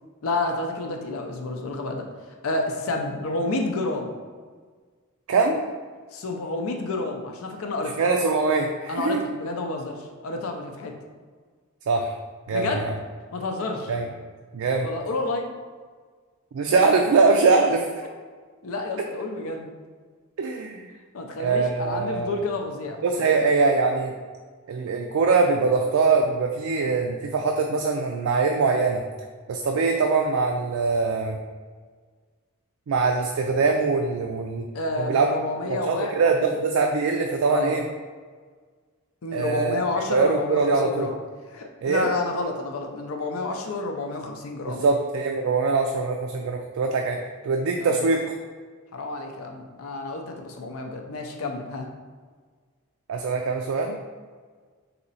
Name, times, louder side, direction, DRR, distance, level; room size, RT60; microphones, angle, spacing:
voice 1, 0.2-2.0 2.4-4.1 6.1-8.0 8.9-10.9 12.5-12.9 13.3-13.9 14.8-15.5 18.6-19.7 21.1-23.4 34.7-36.1 36.4-36.5 37.5-37.7 39.2-41.1 41.5-44.9 47.7-48.1 48.9-51.9, left 2 dB, 80° left, 3 dB, 0.6 m, -30 dB
voice 2, 5.3-5.6 8.0-9.2 11.9-12.1 12.5-12.7 13.9-14.1 14.5-14.9 16.5-17.9 20.4-20.9 21.4-22.4 23.0-24.1 24.7-29.0 29.5-31.4 32.9-34.6 35.0-35.3 35.7-37.8 39.3-39.8 40.1-41.1 41.8-42.1 44.7-47.2 47.4-48.2 53.1-54.0, right 4 dB, 75° right, 3 dB, 0.4 m, -22 dB
4.1 x 2.8 x 4.0 m, 1.6 s
head